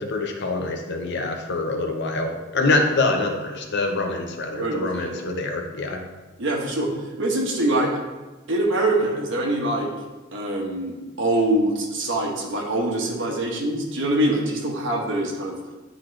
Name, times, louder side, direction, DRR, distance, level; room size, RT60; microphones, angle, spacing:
voice 1, 0.0-6.0, left 2 dB, 60° left, 3 dB, 0.9 m, -25 dB
voice 2, 4.5-5.3 6.4-6.9 7.2-7.9 8.5-9.9 10.3-15.6, right 1 dB, 65° right, 0 dB, 1.3 m, -24 dB
10.5 x 4.1 x 3.3 m, 1.2 s
head